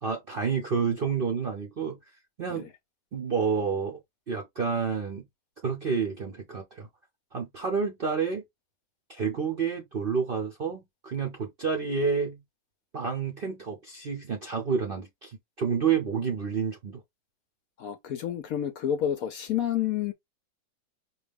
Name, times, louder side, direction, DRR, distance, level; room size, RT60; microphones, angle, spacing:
voice 1, 0.0-2.0 2.4-2.7 3.1-4.0 4.3-5.3 5.6-6.9 7.3-8.4 9.1-12.4 12.9-17.0, right 6 dB, 55° right, 0.6 m, -29 dB
voice 2, 17.8-20.1, left 10 dB, 70° left, 0.9 m, -29 dB
4.8 x 2.3 x 3.4 m
omnidirectional pair, 1.9 m